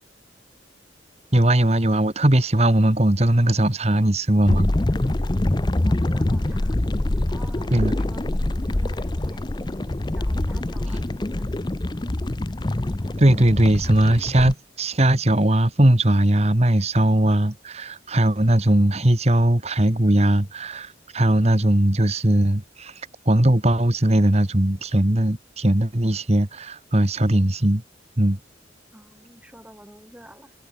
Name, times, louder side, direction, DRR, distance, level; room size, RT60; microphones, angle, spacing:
voice 1, 1.3-4.7 7.7-7.9 13.2-27.8 28.2-28.4, right 1 dB, 35° right, 1.6 m, -19 dB
sound 1, 4.5-14.5, left 1 dB, 25° left, 0.6 m, -25 dB
voice 2, 5.8-6.8 7.3-8.3 8.7-9.8 10.1-11.5 28.9-30.5, equal, 5° right, 7.8 m, -47 dB
head